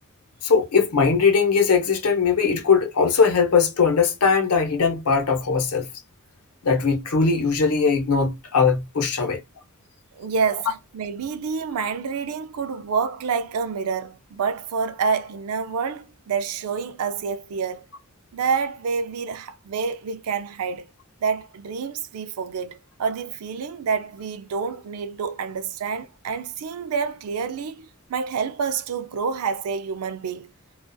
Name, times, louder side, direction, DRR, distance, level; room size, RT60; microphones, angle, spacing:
voice 1, 0.4-5.9 6.6-9.4, left 5 dB, 90° left, 0.7 m, -20 dB
voice 2, 10.1-17.9 18.3-20.9 21.2-30.5, right 5 dB, 85° right, 0.4 m, -28 dB
2.5 x 2.3 x 2.3 m
head